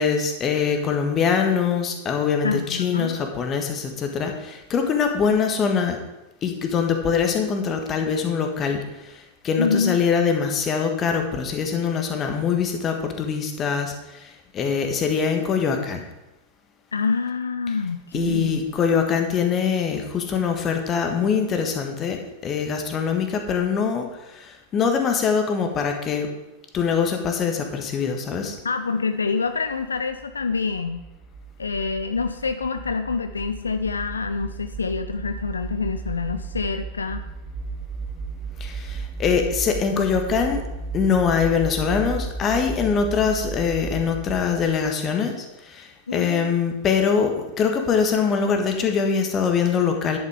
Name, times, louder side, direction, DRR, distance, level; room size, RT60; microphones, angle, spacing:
voice 1, 0.0-6.0 6.4-8.8 9.4-16.0 18.1-24.1 24.3-26.3 26.7-28.5 38.6-40.6 40.9-50.2, left 6 dB, 30° left, 4 dB, 1.5 m, -23 dB
voice 2, 2.4-3.2 9.6-10.0 16.9-18.7 28.6-31.0 31.6-37.2 46.1-46.5, left 4 dB, 75° left, 9 dB, 0.4 m, -26 dB
sound 1, 29.7-45.0, right 4 dB, 20° right, 0.9 m, -35 dB
10.5 x 8.7 x 3.7 m, 0.96 s
figure-of-eight pair, 90°, 0 cm